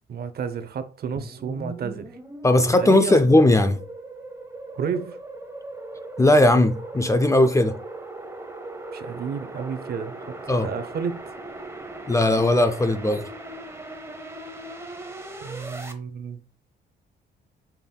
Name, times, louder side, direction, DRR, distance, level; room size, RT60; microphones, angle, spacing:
voice 1, 0.1-2.2 2.7-3.2 4.7-5.2 8.9-11.2 15.4-16.4, right 6 dB, 50° right, 0.6 m, -31 dB
sound 1, 1.2-15.9, right 2 dB, 15° right, 0.8 m, -38 dB
voice 2, 2.4-3.8 6.2-7.7 10.5-10.7 12.1-13.2, left 1 dB, 15° left, 0.4 m, -18 dB
5.6 x 3.3 x 2.2 m
cardioid pair, 90°, 20 cm